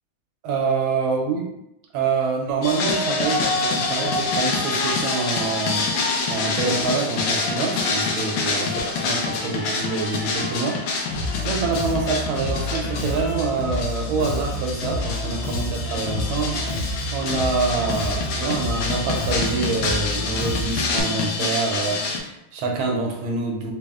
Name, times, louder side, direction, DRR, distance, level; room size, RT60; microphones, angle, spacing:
voice 1, 0.4-1.5 1.9-5.9 6.3-10.8 11.4-16.6 17.1-23.7, right 4 dB, 80° right, 1 dB, 1.5 m, -26 dB
sound 1, 2.6-22.2, left 3 dB, 75° left, 1.3 m, -26 dB
Bass guitar, 11.1-21.0, left 1 dB, 50° left, 1.2 m, -29 dB
4.0 x 2.0 x 3.5 m, 0.83 s
omnidirectional pair, 2.2 m